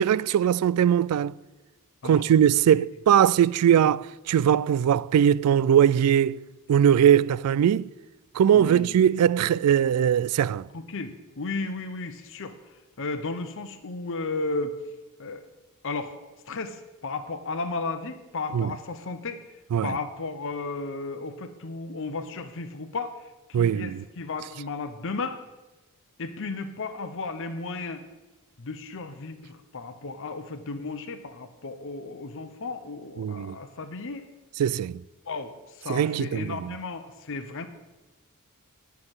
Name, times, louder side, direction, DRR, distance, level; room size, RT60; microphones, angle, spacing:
voice 1, 0.0-1.3 2.0-6.4 6.7-7.9 8.3-10.7 18.5-18.7 19.7-20.0 23.5-24.0 33.2-33.6 34.6-35.0 35.9-36.8, right 9 dB, 80° right, 0.3 m, -21 dB
voice 2, 8.5-9.0 10.7-12.5 13.0-14.8 15.2-15.5 15.8-16.2 16.5-19.4 19.8-23.2 23.5-25.4 26.2-28.0 28.6-34.3 35.2-37.7, left 3 dB, 60° left, 0.8 m, -34 dB
11.0 x 5.8 x 7.9 m
head